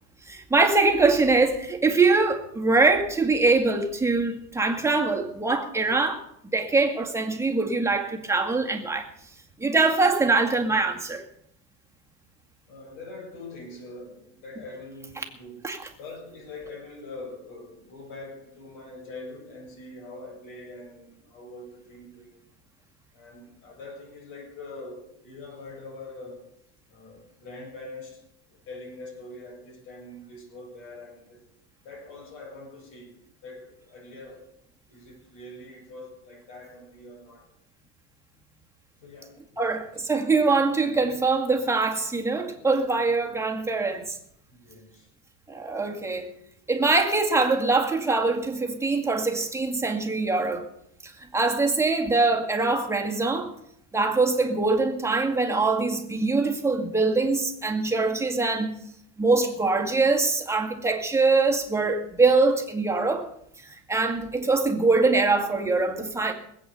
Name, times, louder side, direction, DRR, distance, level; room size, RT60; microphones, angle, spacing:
voice 1, 0.2-9.1 9.6-11.2 15.6-15.8 39.6-44.2 45.5-46.3 46.7-50.7 51.0-53.5 53.9-58.8 59.2-63.3 63.6-66.3, right 3 dB, 10° right, 2.0 m, -23 dB
voice 2, 12.7-22.5 23.1-26.4 26.9-28.2 28.5-31.4 31.8-34.4 34.9-37.5 39.0-39.7 44.5-45.1, left 2 dB, 60° left, 7.5 m, -43 dB
20.0 x 8.4 x 6.8 m
supercardioid pair, 125°, 34 cm